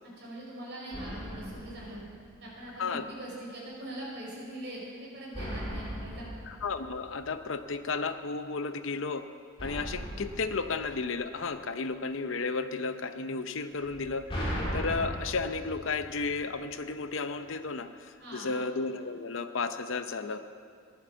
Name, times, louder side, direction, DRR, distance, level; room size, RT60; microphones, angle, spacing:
voice 1, 0.0-2.0 2.4-6.3 18.2-18.6, right 1 dB, 50° right, -5 dB, 5.4 m, -42 dB
sound 1, 0.9-2.8 5.3-7.8 9.6-11.8 13.8-16.9, equal, 25° left, 3.7 m, -38 dB
voice 2, 6.5-9.2 9.6-14.2 14.7-20.4, left 4 dB, 60° left, 10 dB, 0.7 m, -33 dB
15.0 x 11.0 x 7.5 m, 2.2 s
head